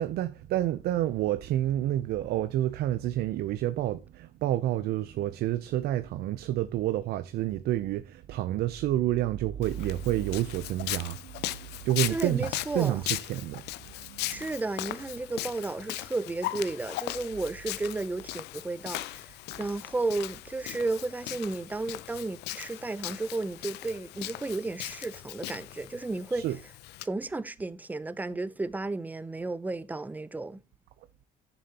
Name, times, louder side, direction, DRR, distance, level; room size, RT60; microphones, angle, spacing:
voice 1, 0.0-11.5 11.8-12.5 12.7-14.4 26.3-26.6, right 13 dB, 70° right, 0.5 m, -29 dB
Walk footsteps, 9.6-27.1, left 16 dB, 80° left, 0.5 m, -38 dB
voice 2, 12.1-13.0 14.2-26.5 27.0-30.6, right 2 dB, 10° right, 0.5 m, -33 dB
11.0 x 7.0 x 2.8 m
cardioid pair, 110°, 17 cm